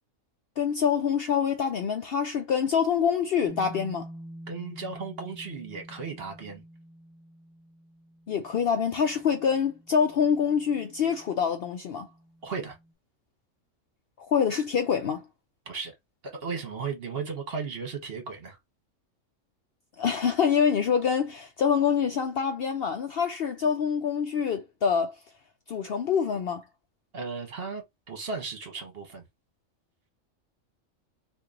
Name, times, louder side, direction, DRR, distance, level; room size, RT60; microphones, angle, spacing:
voice 1, 0.6-4.1 8.3-12.1 14.2-15.2 20.0-25.2 25.7-26.6, left 7 dB, 60° left, 0.6 m, -26 dB
sound 1, 3.5-12.9, right 1 dB, 5° right, 0.7 m, -48 dB
voice 2, 4.5-6.6 12.4-12.8 15.7-15.9 16.4-18.6 27.1-29.2, right 5 dB, 50° right, 1.3 m, -35 dB
2.9 x 2.6 x 3.7 m
omnidirectional pair, 1.4 m